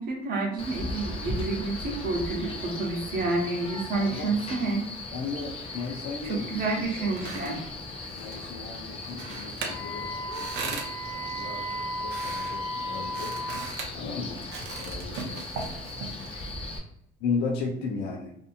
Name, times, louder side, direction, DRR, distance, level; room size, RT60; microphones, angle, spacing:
voice 1, 0.0-4.9 6.2-7.7, right 3 dB, 60° right, -1 dB, 0.9 m, -29 dB
Male speech man speaking, 0.6-16.8, left 2 dB, 35° left, 0.6 m, -38 dB
voice 2, 4.0-4.3 5.1-6.9 7.2-7.3 8.1-10.1 10.4-13.4 13.9-14.5 14.8-15.5 17.2-18.4, left 4 dB, 90° left, 1 dB, 0.5 m, -35 dB
sound 1, 6.8-16.5, right 4 dB, 80° right, 0.6 m, -40 dB
Wind instrument woodwind instrument, 9.6-13.7, equal, 5° right, 0.6 m, -35 dB
2.7 x 2.5 x 2.4 m, 0.72 s
cardioid pair, 110°, 17 cm